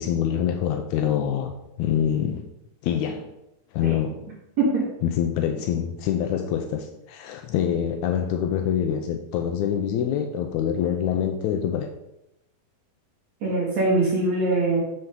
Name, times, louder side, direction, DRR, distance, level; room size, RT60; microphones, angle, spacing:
voice 1, 0.0-1.5 1.8-2.5 2.8-3.3 3.7-4.2 5.0-11.9, left 9 dB, 85° left, 5 dB, 1.7 m, -25 dB
voice 2, 13.4-14.8, right 2 dB, 55° right, -5 dB, 3.3 m, -22 dB
8.0 x 6.9 x 3.8 m, 0.86 s
omnidirectional pair, 4.0 m